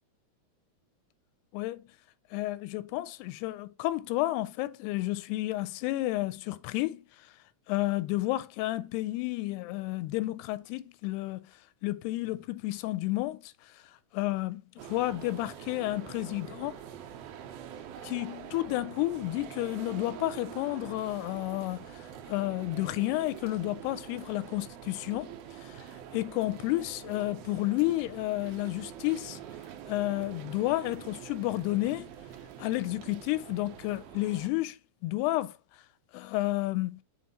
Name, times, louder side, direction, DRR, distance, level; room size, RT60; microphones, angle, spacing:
voice 1, 1.5-1.9 2.3-7.1 7.7-11.5 11.8-13.7 14.1-14.6 14.9-16.8 18.0-25.8 26.1-29.4 29.9-32.1 32.6-35.6 36.1-37.0, left 18 dB, 90° left, 2.6 m, -31 dB
sound 1, 14.8-34.5, right 9 dB, 75° right, 2.7 m, -45 dB
7.3 x 3.9 x 4.2 m
omnidirectional pair, 4.6 m